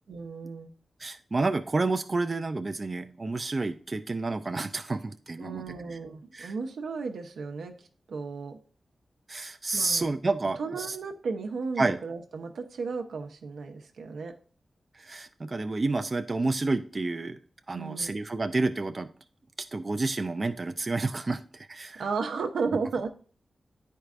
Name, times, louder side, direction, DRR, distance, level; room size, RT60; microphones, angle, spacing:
voice 1, 0.1-0.7 5.4-7.8 8.1-8.6 9.7-10.1 10.6-14.4 17.7-18.2 22.0-23.1, right 4 dB, 90° right, 4 dB, 0.8 m, -34 dB
voice 2, 1.0-5.6 6.3-6.5 9.3-11.0 11.8-12.0 14.9-17.4 17.7-19.1 19.7-22.0, right 3 dB, 40° right, 8 dB, 0.4 m, -29 dB
9.4 x 4.6 x 2.5 m, 0.42 s
cardioid pair, 70°, 0 cm